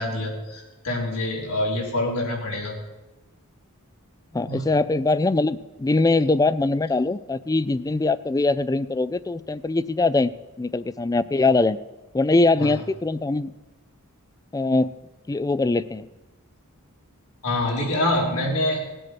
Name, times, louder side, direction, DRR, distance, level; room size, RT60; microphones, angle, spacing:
voice 1, 0.0-2.7 4.3-4.6 12.6-12.7 17.4-18.8, left 1 dB, 80° left, -1 dB, 3.6 m, -26 dB
voice 2, 4.3-11.8 12.1-13.5 14.5-14.9 15.3-16.1, left 3 dB, 15° left, 16 dB, 0.3 m, -22 dB
18.5 x 7.8 x 6.2 m, 1.1 s
head